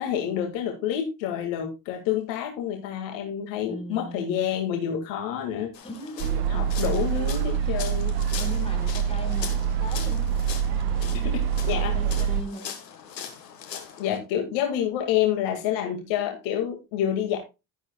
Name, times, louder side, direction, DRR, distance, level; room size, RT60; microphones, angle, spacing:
voice 1, 0.0-5.7 6.5-8.2 11.2-12.0 14.0-17.4, left 10 dB, 65° left, 3 dB, 2.1 m, -28 dB
voice 2, 3.6-4.2 5.8-6.7 7.6-7.8 8.3-12.8, equal, 10° left, 3 dB, 4.9 m, -39 dB
sound 1, 5.7-14.2, left 8 dB, 90° left, 1.5 m, -41 dB
sound 2, 6.2-12.4, right 8 dB, 75° right, 0.9 m, -25 dB
12.0 x 9.8 x 2.3 m, 0.27 s
hypercardioid pair, 60°, 48 cm